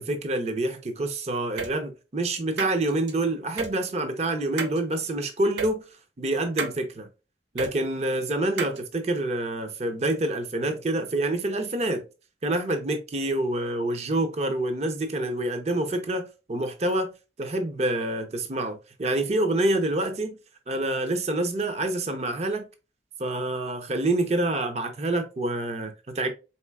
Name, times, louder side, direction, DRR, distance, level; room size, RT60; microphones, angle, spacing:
voice 1, 0.0-5.8 6.2-7.1 7.5-12.0 12.4-17.1 17.4-20.4 20.7-22.6 23.2-26.3, right 1 dB, 40° right, 0.6 m, -27 dB
sound 1, 1.6-1.7 2.6-3.1 3.6-3.7 4.6-4.8 5.6-5.7 6.6-6.8 7.6-7.7 8.6-8.8, right 5 dB, 85° right, 0.6 m, -31 dB
4.3 x 3.8 x 2.3 m
head